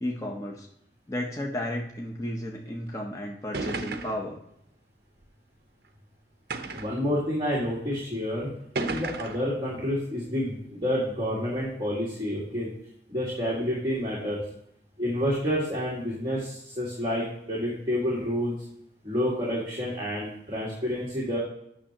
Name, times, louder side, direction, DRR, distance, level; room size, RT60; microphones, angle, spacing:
voice 1, 0.0-0.7 1.1-4.4, left 1 dB, 20° left, 0 dB, 0.7 m, -33 dB
sound 1, 2.9-3.0 3.5-4.3 5.2-5.3 6.5-7.0 7.9-8.0 8.8-9.5, right 3 dB, 60° right, 0.7 m, -33 dB
voice 2, 6.7-8.5 8.9-12.7 13.1-14.4 15.0-18.5 19.0-21.4, equal, 25° right, -6 dB, 1.7 m, -29 dB
8.7 x 6.3 x 2.8 m, 0.76 s
head